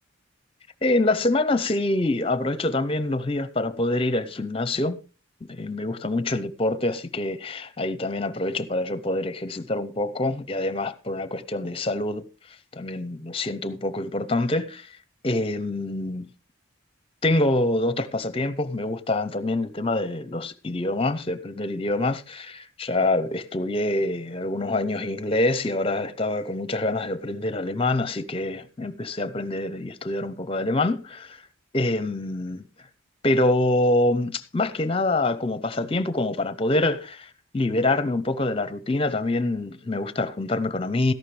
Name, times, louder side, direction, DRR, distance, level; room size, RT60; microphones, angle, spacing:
voice 1, 0.8-5.0 5.4-15.0 15.2-16.3 17.2-31.4 31.7-32.6 33.2-41.1, left 2 dB, 25° left, 0.6 m, -26 dB
13.5 x 11.5 x 3.3 m
head